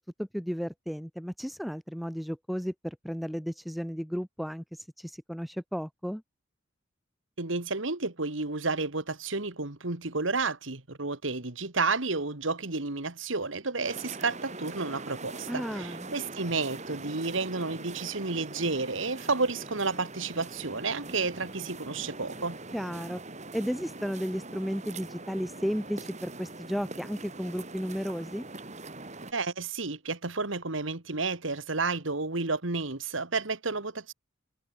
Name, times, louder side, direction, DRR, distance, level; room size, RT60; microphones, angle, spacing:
voice 1, 0.0-6.2 15.5-16.1 22.7-23.2 23.5-28.4, equal, ahead, 4.4 m, -34 dB
voice 2, 7.4-22.6 29.3-34.1, right 3 dB, 75° right, 2.2 m, -31 dB
sound 1, 13.8-29.3, right 2 dB, 35° right, 4.6 m, -42 dB
head